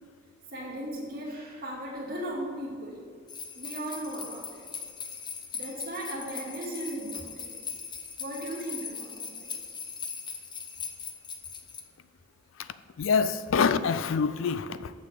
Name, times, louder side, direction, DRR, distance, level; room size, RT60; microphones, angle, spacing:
voice 1, 0.5-3.0 3.5-4.7 5.5-7.6 8.2-9.5, right 1 dB, 45° right, 2.4 m, -37 dB
sound 1, 3.3-11.8, left 6 dB, 25° left, 0.7 m, -40 dB
voice 2, 13.0-14.9, left 5 dB, 75° left, 0.4 m, -26 dB
7.2 x 6.3 x 6.6 m
head